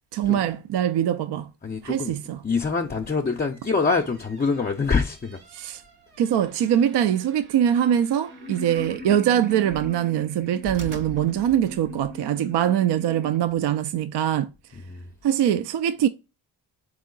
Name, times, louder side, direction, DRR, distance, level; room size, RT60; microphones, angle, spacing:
voice 1, 0.1-1.5 1.8-2.4 5.5-5.8 6.2-14.5 15.2-16.1, right 10 dB, 55° right, 0.5 m, -23 dB
voice 2, 1.6-2.2 2.4-5.4 14.9-15.1, left 4 dB, 20° left, 0.5 m, -25 dB
sound 1, 3.4-12.2, right 3 dB, 85° right, 0.8 m, -45 dB
sound 2, 8.3-13.4, right 1 dB, 20° right, 0.7 m, -40 dB
3.7 x 3.1 x 3.7 m
supercardioid pair, 45°, 49 cm